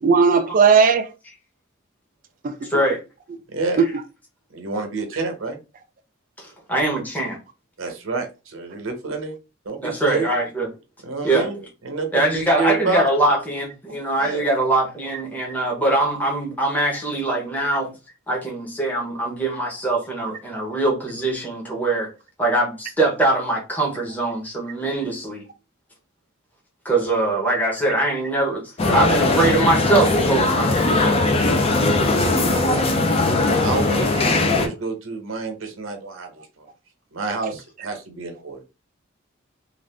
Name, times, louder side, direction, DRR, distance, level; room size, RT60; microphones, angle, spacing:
voice 1, 0.0-1.1 2.4-2.7 3.8-3.9 30.8-30.9, right 5 dB, 40° right, 0.3 m, -16 dB
voice 2, 2.7-3.0 6.4-7.4 9.8-10.7 11.2-11.5 12.1-17.9 18.3-22.1 22.4-25.4 26.8-30.8, right 2 dB, 10° left, 0.9 m, -22 dB
voice 3, 4.5-5.6 7.8-9.4 9.6-10.3 11.0-11.6 11.8-13.1 14.2-14.5 31.1-31.4 32.0-32.9 33.6-36.7 37.1-38.6, right 3 dB, 85° right, 0.9 m, -28 dB
sound 1, 28.8-34.7, left 2 dB, 30° left, 0.5 m, -19 dB
2.6 x 2.4 x 3.4 m
head